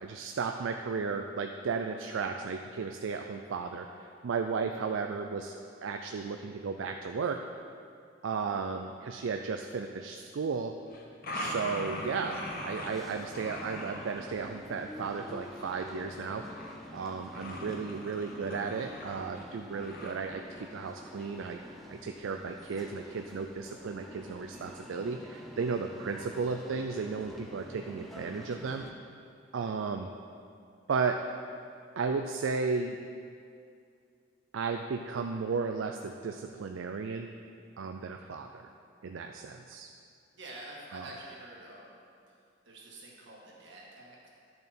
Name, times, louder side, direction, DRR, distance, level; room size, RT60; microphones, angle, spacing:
voice 1, 0.0-7.4 8.2-10.7 11.3-16.4 16.9-21.6 21.9-28.8 29.5-30.1 30.9-31.2 32.0-33.0 34.5-37.3 37.8-38.7 39.0-39.9 40.9-41.1, right 5 dB, 85° right, 5 dB, 0.4 m, -34 dB
sound 1, 10.9-12.9 13.2-14.3 15.2-16.9 17.3-19.4 19.8-20.1, left 1 dB, 50° left, 1.1 m, -41 dB
sound 2, 11.8-28.9, left 1 dB, ahead, 0.7 m, -48 dB
voice 2, 40.3-42.0 42.7-44.3, right 1 dB, 65° right, -4 dB, 1.9 m, -47 dB
10.5 x 6.7 x 4.3 m, 2.4 s
head